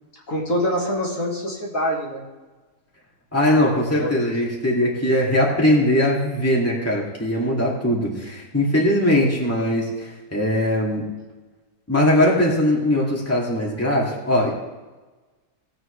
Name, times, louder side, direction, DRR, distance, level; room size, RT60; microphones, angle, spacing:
voice 1, 0.3-2.2 3.6-4.3, equal, 50° left, -3 dB, 2.2 m, -25 dB
voice 2, 3.3-11.0 11.9-14.5, left 1 dB, 10° left, -4 dB, 2.3 m, -20 dB
18.5 x 7.8 x 3.3 m, 1.2 s
omnidirectional pair, 1.8 m